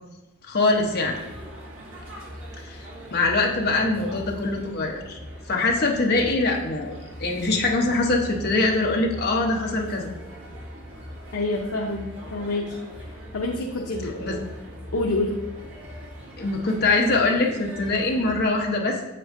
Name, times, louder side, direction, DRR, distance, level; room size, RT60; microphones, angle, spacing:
voice 1, 0.4-1.2 2.6-2.8 3.1-5.2 5.5-6.9 7.2-10.1 14.0-14.4 16.4-19.0, left 2 dB, 45° left, 0 dB, 0.9 m, -23 dB
sound 1, 0.7-18.5, equal, 60° right, 2.1 m, -40 dB
voice 2, 11.3-12.8 13.3-14.4 14.9-15.4, left 2 dB, 80° left, 0 dB, 0.7 m, -27 dB
7.6 x 6.3 x 2.6 m, 1.0 s
head